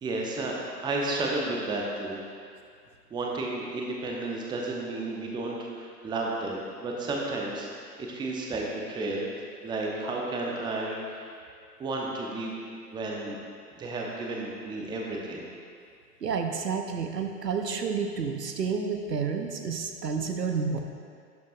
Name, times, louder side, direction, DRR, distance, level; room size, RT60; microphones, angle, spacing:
voice 1, 0.0-2.2 3.1-9.3 9.6-11.3 11.8-12.6 12.9-13.4 13.8-15.5, right 2 dB, 10° right, -2 dB, 0.7 m, -32 dB
voice 2, 16.2-20.8, right 5 dB, 85° right, 5 dB, 0.8 m, -30 dB
11.5 x 6.7 x 2.4 m, 2.2 s
figure-of-eight pair, 105°, 48 cm